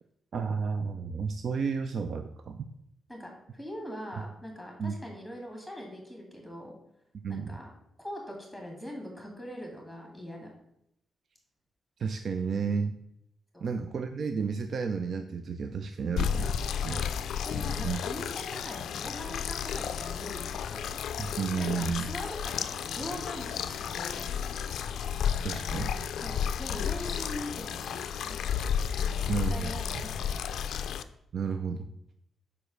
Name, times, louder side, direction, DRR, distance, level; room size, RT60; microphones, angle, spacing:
voice 1, 0.3-2.7 4.8-4.9 7.2-7.5 12.0-13.0 13.6-16.6 16.8-17.0 17.8-18.0 21.2-22.1 25.4-25.9 29.3-29.7 31.3-31.9, right 5 dB, 55° right, 7 dB, 0.4 m, -32 dB
voice 2, 3.1-6.7 7.3-7.7 8.0-10.5 13.5-13.7 16.9-17.1 17.4-21.0 21.6-24.5 26.2-28.4 29.0-30.6, equal, 5° right, 0 dB, 2.1 m, -42 dB
sound 1, 16.2-31.0, left 8 dB, 85° left, 0.4 m, -32 dB
5.1 x 4.8 x 6.3 m, 0.78 s
cardioid pair, 135°, 0 cm